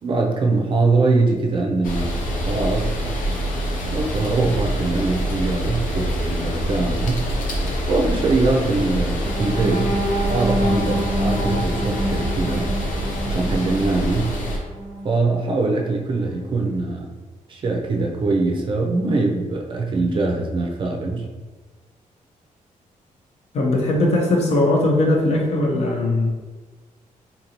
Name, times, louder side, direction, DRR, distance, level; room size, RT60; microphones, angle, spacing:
voice 1, 0.0-3.0 3.9-7.2 7.9-9.9 10.3-12.7 13.3-14.3 15.0-17.1 17.5-21.3, right 3 dB, 40° right, 0 dB, 0.4 m, -22 dB
sound 1, 1.8-14.6, equal, 90° left, 0.6 m, -25 dB
sound 2, 9.2-15.2 15.6-15.8 16.2-16.4, equal, 15° left, 0.8 m, -27 dB
voice 2, 23.5-26.3, left 1 dB, 55° left, 0 dB, 0.7 m, -19 dB
3.9 x 2.6 x 2.9 m, 1.3 s
wide cardioid pair, 160°, 14 cm